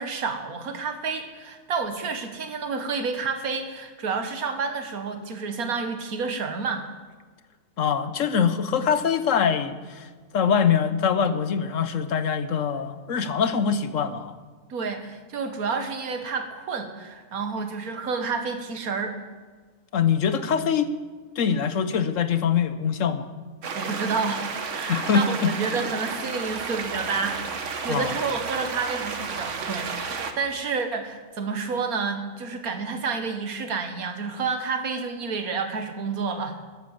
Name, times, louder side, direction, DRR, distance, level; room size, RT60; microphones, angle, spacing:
voice 1, 0.0-6.9 14.7-19.2 23.7-36.6, right 4 dB, 80° right, 7 dB, 1.7 m, -30 dB
voice 2, 7.8-10.1 10.3-14.4 19.9-20.9 21.4-23.3 24.9-25.5 27.9-28.1, left 7 dB, 65° left, 11 dB, 1.1 m, -23 dB
sound 1, 23.6-30.3, right 5 dB, 60° right, 1.4 m, -32 dB
13.0 x 10.5 x 7.1 m, 1.4 s
omnidirectional pair, 1.5 m